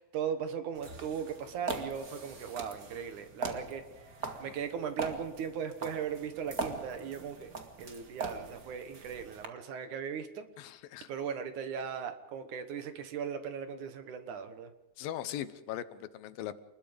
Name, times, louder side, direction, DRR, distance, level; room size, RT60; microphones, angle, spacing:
voice 1, 0.0-3.8 4.4-10.5 11.1-14.7, right 7 dB, 65° right, 9 dB, 2.6 m, -38 dB
sound 1, 0.7-9.5, right 3 dB, 35° right, 1.5 m, -41 dB
voice 2, 4.2-4.5 10.6-11.1 15.0-16.6, left 11 dB, 80° left, 13 dB, 2.7 m, -40 dB
27.5 x 20.5 x 5.2 m, 0.91 s
omnidirectional pair, 4.1 m